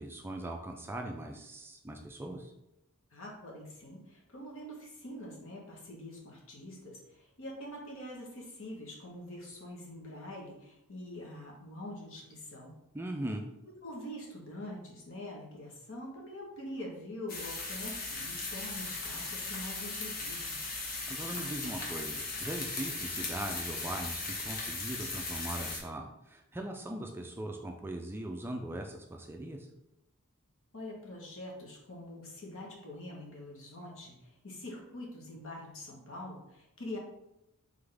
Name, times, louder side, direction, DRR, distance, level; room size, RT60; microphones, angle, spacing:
voice 1, 0.0-2.5 12.9-13.4 21.1-29.7, right 1 dB, 10° right, 3 dB, 0.3 m, -40 dB
voice 2, 3.1-12.7 13.7-20.6 30.7-37.0, left 1 dB, 65° left, -2 dB, 1.1 m, -45 dB
sound 1, 17.3-25.8, left 3 dB, 45° left, 1.0 m, -38 dB
3.8 x 3.5 x 3.4 m, 0.89 s
head